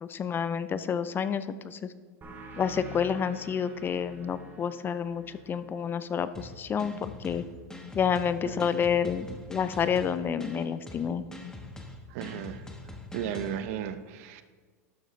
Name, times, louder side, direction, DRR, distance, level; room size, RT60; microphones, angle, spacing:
voice 1, 0.0-1.9 2.6-7.4 7.9-11.2, left 7 dB, 25° left, 13 dB, 0.4 m, -29 dB
sound 1, 2.2-7.4, right 1 dB, 25° right, 2.2 m, -48 dB
sound 2, 6.3-13.6, left 2 dB, 10° left, 1.2 m, -43 dB
voice 2, 8.4-8.8 12.1-12.6 13.1-14.4, right 9 dB, 65° right, 11 dB, 0.7 m, -35 dB
12.0 x 7.1 x 3.1 m, 1.5 s
hypercardioid pair, 105°, 8 cm